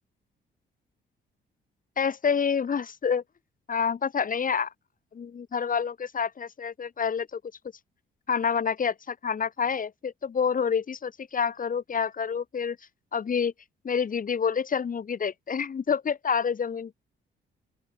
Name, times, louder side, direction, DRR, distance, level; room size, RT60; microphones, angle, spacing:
voice 1, 2.0-3.2 3.7-4.7 5.1-7.4 8.3-12.8 13.1-13.5 13.8-16.9, left 6 dB, 45° left, 2.7 m, -28 dB
open air
cardioid pair, 90°, 20 cm